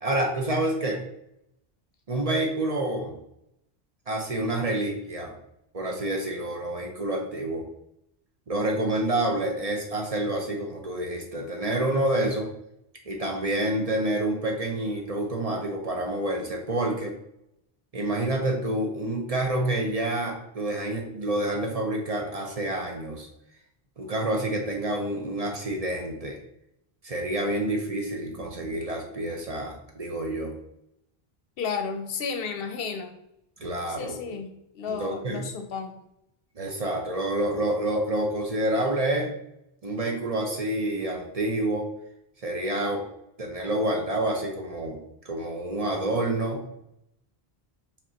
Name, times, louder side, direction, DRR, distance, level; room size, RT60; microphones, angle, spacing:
voice 1, 0.0-1.0 2.1-3.2 4.1-5.4 5.7-7.6 8.5-12.5 13.1-17.1 17.9-23.3 24.0-26.4 27.0-30.5 33.6-34.4 34.9-35.5 36.6-39.3 39.8-41.9 42.4-43.0 43.4-45.0 45.2-46.6, right 1 dB, 40° right, 1 dB, 0.7 m, -28 dB
voice 2, 31.6-33.2 33.9-36.0, left 5 dB, 70° left, 7 dB, 0.7 m, -33 dB
5.1 x 3.5 x 2.8 m, 0.79 s
omnidirectional pair, 1.0 m